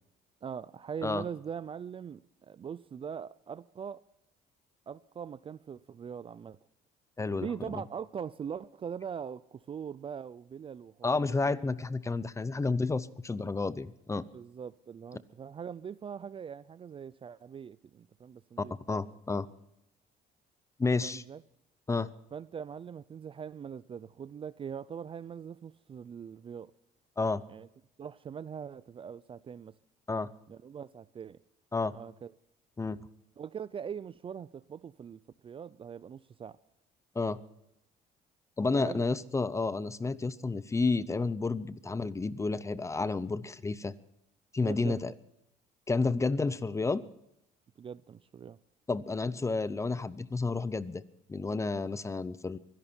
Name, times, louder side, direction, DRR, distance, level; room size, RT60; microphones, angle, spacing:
voice 1, 0.4-4.0 4.9-6.6 7.4-11.3 14.3-18.7 21.0-21.4 22.3-26.7 27.5-27.7 28.0-29.7 30.5-31.4 31.9-32.3 33.4-36.6 38.7-39.1 44.6-45.0 47.8-48.6, right 7 dB, 30° right, 0.4 m, -42 dB
voice 2, 7.2-7.5 11.0-14.2 18.9-19.5 20.8-21.2 21.9-22.1 27.2-27.4 30.1-30.3 31.7-31.9 32.8-33.0 37.2-37.4 38.6-43.9 44.5-45.1 45.9-47.0 48.9-51.0 51.3-52.6, left 3 dB, 15° left, 0.7 m, -30 dB
24.0 x 11.0 x 4.4 m
cardioid pair, 110°, 17 cm